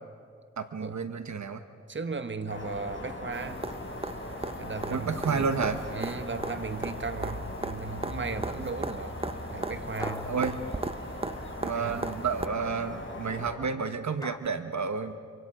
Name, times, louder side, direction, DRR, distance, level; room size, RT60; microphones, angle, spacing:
voice 1, 0.6-1.6 4.9-5.8 10.2-10.6 11.6-15.2, right 5 dB, 70° right, 1.1 m, -30 dB
voice 2, 1.9-3.7 4.6-5.5 5.9-9.2 9.5-10.3 11.7-12.1, right 4 dB, 40° right, 1.2 m, -36 dB
sound 1, 2.5-13.5, left 1 dB, 40° left, 5.2 m, -39 dB
sound 2, 3.3-12.5 14.5-14.6, right 3 dB, 20° right, 0.6 m, -38 dB
sound 3, 6.4-7.6 10.0-11.7 14.2-14.4, left 1 dB, 10° left, 0.9 m, -44 dB
26.0 x 25.5 x 5.0 m
cardioid pair, 55°, 29 cm